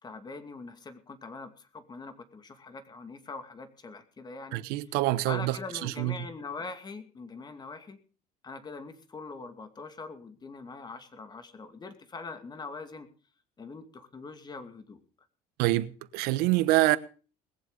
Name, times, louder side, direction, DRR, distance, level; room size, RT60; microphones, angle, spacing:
voice 1, 0.0-4.7 5.2-8.0 8.4-13.1 13.6-15.0, left 4 dB, 25° left, 2.4 m, -43 dB
voice 2, 4.5-5.6 5.8-6.1 15.6-17.0, right 17 dB, 80° right, 1.1 m, -26 dB
20.5 x 7.6 x 6.7 m
cardioid pair, 110°, 16 cm